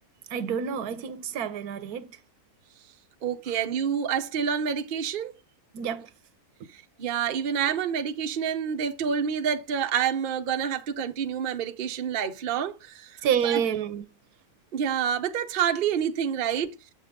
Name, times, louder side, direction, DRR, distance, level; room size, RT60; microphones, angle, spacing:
voice 1, 0.3-2.2 5.7-6.1 13.2-14.0, right 8 dB, 85° right, 1.3 m, -28 dB
voice 2, 3.2-5.3 6.7-13.2 13.4-13.6 14.7-16.7, right 8 dB, 45° right, 0.8 m, -28 dB
7.2 x 6.7 x 3.6 m
omnidirectional pair, 1.6 m